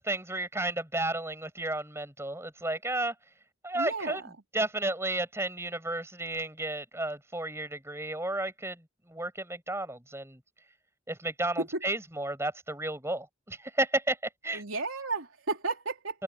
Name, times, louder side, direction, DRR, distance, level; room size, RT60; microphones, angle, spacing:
voice 1, 0.0-3.1 3.6-8.8 9.1-10.4 11.1-14.2 14.4-14.6 16.1-16.2, right 2 dB, 15° right, 7.5 m, -32 dB
voice 2, 3.7-4.3 14.5-16.2, right 3 dB, 80° right, 3.6 m, -33 dB
head